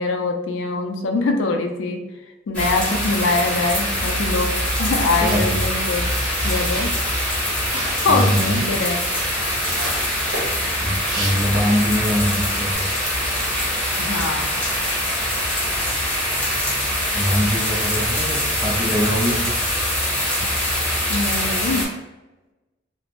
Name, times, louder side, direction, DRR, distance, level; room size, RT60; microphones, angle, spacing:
voice 1, 0.0-2.0 2.5-4.5 4.8-6.1 6.4-6.9 7.7-9.0 14.0-14.5 21.1-21.8, left 3 dB, 80° left, 4 dB, 0.4 m, -23 dB
sound 1, 2.5-21.9, equal, 5° left, 0.9 m, -23 dB
voice 2, 4.9-5.6 8.1-8.7 10.8-12.9 17.1-19.5, equal, 10° right, -6 dB, 0.4 m, -23 dB
sound 2, 5.2-12.1 12.4-12.8, right 1 dB, 85° right, 1.0 m, -34 dB
2.5 x 2.0 x 2.9 m, 1.1 s
head